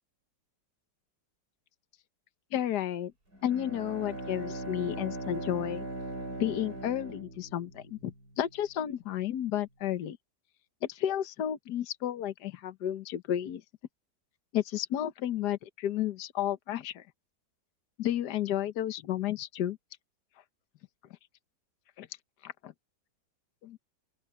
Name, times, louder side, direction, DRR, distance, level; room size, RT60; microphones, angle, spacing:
voice 1, 2.5-3.1 3.4-5.8 6.4-10.2 10.9-13.6 14.5-17.0 18.0-19.8 22.0-22.1 22.4-22.7 23.6-23.8, left 11 dB, 70° left, 1.5 m, -32 dB
Bowed string instrument, 3.3-8.1, right 2 dB, 55° right, 6.6 m, -39 dB
open air
omnidirectional pair, 1.9 m